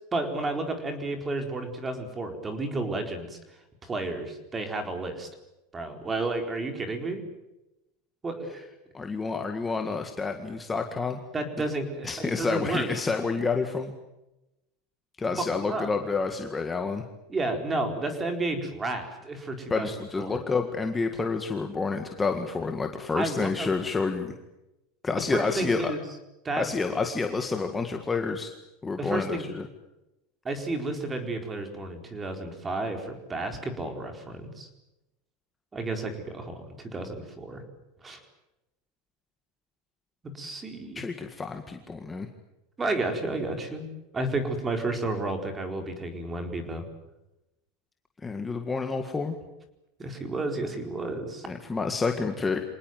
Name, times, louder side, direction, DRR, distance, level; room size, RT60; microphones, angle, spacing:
voice 1, 0.1-3.4 3.8-5.3 5.7-7.2 8.2-8.6 11.3-12.9 15.3-15.9 17.3-19.9 20.2-20.4 23.1-23.7 25.1-26.0 26.4-26.7 29.0-29.4 30.4-34.7 35.7-37.6 38.0-38.2 40.3-41.0 42.8-43.9 44.1-46.8 50.0-51.5, right 2 dB, 15° right, 6 dB, 4.4 m, -31 dB
voice 2, 8.9-11.2 12.0-13.9 15.2-17.0 19.7-24.3 25.0-25.9 26.6-28.5 28.8-29.7 41.0-42.3 48.2-49.3 51.5-52.6, left 4 dB, 10° left, 5 dB, 1.9 m, -29 dB
26.5 x 19.0 x 9.2 m, 0.94 s
supercardioid pair, 155°, 0 cm